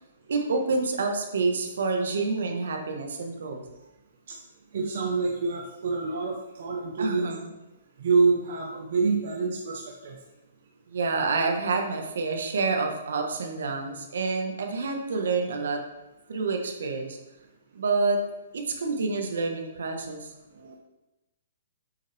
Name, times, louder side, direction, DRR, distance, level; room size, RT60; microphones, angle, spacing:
voice 1, 0.3-3.6 7.0-7.5 10.9-15.8 16.3-17.2 17.7-18.2 18.5-20.3, right 4 dB, 75° right, 3 dB, 1.5 m, -28 dB
voice 2, 4.7-7.3 8.0-10.2 20.6-20.8, right 4 dB, 60° right, -1 dB, 1.1 m, -26 dB
8.2 x 5.8 x 3.5 m, 0.97 s
hypercardioid pair, 145°, 0 cm